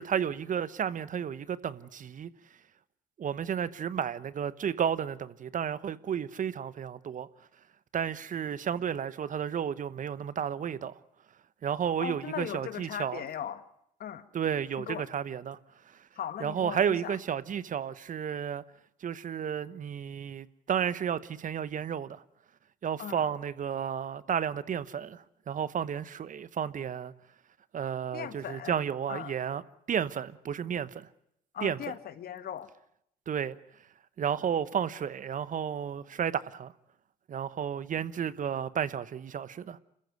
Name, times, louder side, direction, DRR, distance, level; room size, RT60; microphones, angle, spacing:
voice 1, 0.0-2.3 3.2-7.3 7.9-10.9 11.6-13.2 14.3-15.6 15.9-16.0 16.4-18.6 19.0-22.2 22.8-27.1 27.7-29.6 29.9-31.1 31.6-31.8 33.3-33.5 34.2-36.7 37.3-39.8, right 8 dB, 45° right, 1.0 m, -32 dB
voice 2, 12.0-13.6 14.0-14.2 14.8-15.1 16.1-17.2 23.0-23.2 28.1-28.8 29.1-29.3 31.5-32.7, left 9 dB, 55° left, 1.7 m, -38 dB
27.0 x 14.5 x 9.5 m
hypercardioid pair, 65°, 19 cm